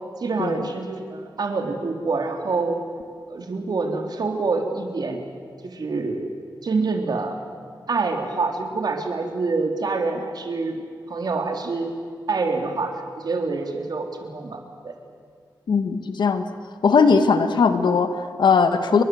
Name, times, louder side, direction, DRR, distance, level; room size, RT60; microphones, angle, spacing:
voice 1, 0.2-2.8 3.3-5.2 5.6-6.2 6.6-7.4 7.9-10.8 11.1-11.9 12.3-14.9 18.9-19.0, right 3 dB, 65° right, 4 dB, 3.7 m, -26 dB
voice 2, 15.7-16.5 16.8-19.0, left 5 dB, 90° left, 9 dB, 1.9 m, -19 dB
29.5 x 23.5 x 8.0 m, 2.1 s
wide cardioid pair, 105°, 8 cm